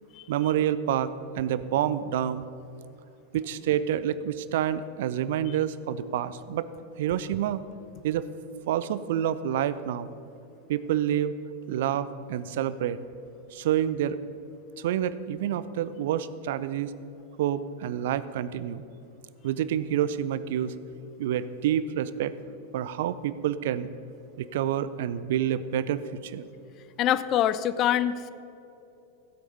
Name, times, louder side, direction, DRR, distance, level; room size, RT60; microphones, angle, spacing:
voice 1, 0.3-2.5 3.3-6.7 7.0-7.6 8.0-8.3 8.7-10.1 10.7-11.3 11.7-13.0 13.5-14.2 14.8-16.9 17.4-18.8 19.4-20.7 21.2-22.4 22.7-23.9 24.4-26.5, right 10 dB, 55° right, 15 dB, 0.5 m, -28 dB
voice 2, 27.0-28.3, left 11 dB, 35° left, 15 dB, 0.5 m, -25 dB
15.5 x 8.4 x 5.4 m, 2.8 s
figure-of-eight pair, 90°, 0 cm